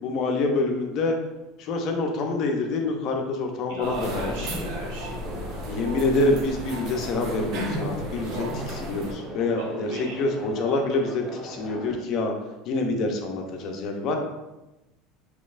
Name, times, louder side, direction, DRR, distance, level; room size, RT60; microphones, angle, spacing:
voice 1, 0.0-1.1 1.6-4.3 5.7-12.3 12.7-14.1, left 2 dB, 55° left, 3 dB, 0.6 m, -26 dB
voice 2, 3.7-5.7 9.9-10.2, right 2 dB, 75° right, -3 dB, 1.2 m, -36 dB
sound 1, 3.8-9.1, equal, 60° right, 0.7 m, -34 dB
sound 2, 4.0-12.0, equal, 5° left, 1.1 m, -39 dB
3.9 x 3.0 x 2.5 m, 1.0 s
supercardioid pair, 110°, 0 cm